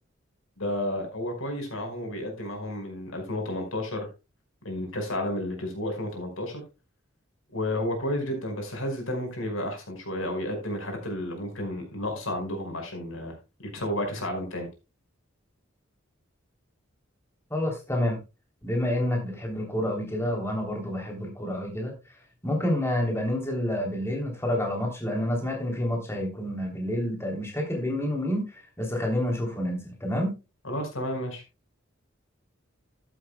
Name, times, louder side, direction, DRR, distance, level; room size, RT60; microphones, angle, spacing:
voice 1, 0.6-4.1 4.6-6.6 7.5-13.3 13.7-14.7 30.6-31.4, left 1 dB, 90° left, 4 dB, 5.1 m, -31 dB
voice 2, 17.5-18.2 18.6-21.9 22.4-28.4 28.8-30.3, left 1 dB, 15° left, 0 dB, 3.2 m, -28 dB
13.0 x 11.5 x 2.3 m, 0.27 s
head